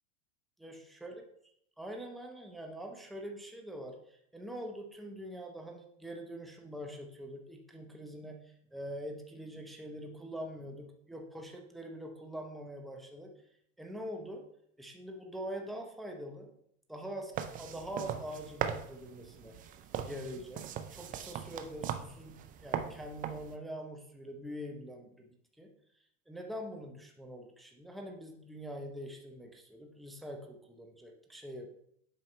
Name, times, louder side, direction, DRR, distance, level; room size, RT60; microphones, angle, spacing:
voice 1, 1.8-13.3 13.8-14.4 14.8-16.5 16.9-19.5 20.0-20.6 20.9-25.3 25.6-25.7 26.3-31.7, equal, ahead, 1 dB, 0.8 m, -44 dB
sound 1, 17.3-23.6, right 9 dB, 20° right, 0.4 m, -39 dB
8.0 x 5.4 x 3.2 m, 0.71 s
hypercardioid pair, 115°, 42 cm